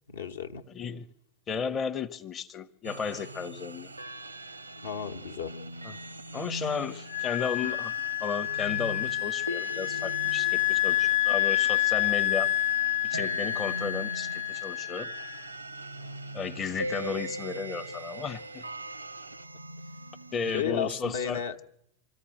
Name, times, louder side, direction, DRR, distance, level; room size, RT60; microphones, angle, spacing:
voice 1, 0.1-0.7 4.8-5.6 16.0-16.2 20.5-21.6, left 7 dB, 65° left, 1.0 m, -33 dB
voice 2, 0.7-1.1 1.5-3.9 5.8-6.0 6.3-7.9 8.2-12.5 13.0-15.1 16.3-18.7 20.3-21.4, left 6 dB, 25° left, 0.7 m, -34 dB
sound 1, 2.8-20.6, right 1 dB, 85° right, 0.7 m, -40 dB
Wind instrument woodwind instrument, 7.1-15.4, left 14 dB, 45° left, 1.2 m, -28 dB
25.0 x 14.5 x 7.8 m
figure-of-eight pair, 90°, 0 cm